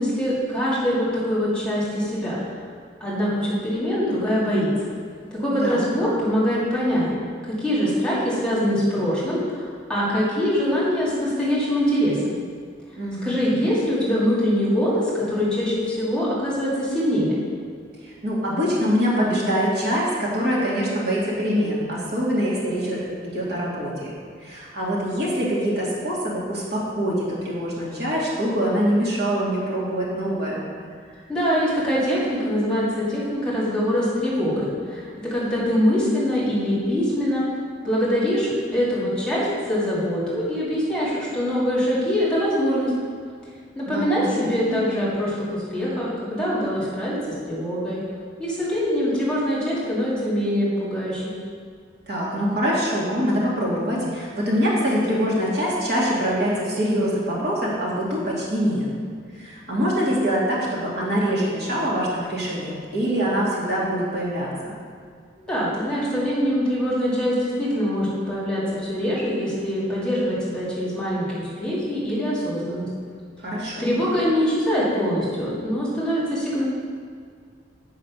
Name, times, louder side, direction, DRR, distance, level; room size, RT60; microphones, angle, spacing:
voice 1, 0.0-2.4 3.0-4.9 5.3-7.1 7.4-12.3 13.2-17.3 31.3-37.5 37.8-42.9 43.7-48.0 48.4-51.4 65.4-72.9 73.8-76.6, equal, 5° left, -8 dB, 2.2 m, -23 dB
voice 2, 5.5-5.8 13.0-13.4 18.0-30.6 43.9-44.8 52.1-58.9 59.3-64.7 73.4-74.0, equal, 55° right, -6 dB, 2.3 m, -24 dB
8.4 x 5.0 x 6.1 m, 2.1 s
head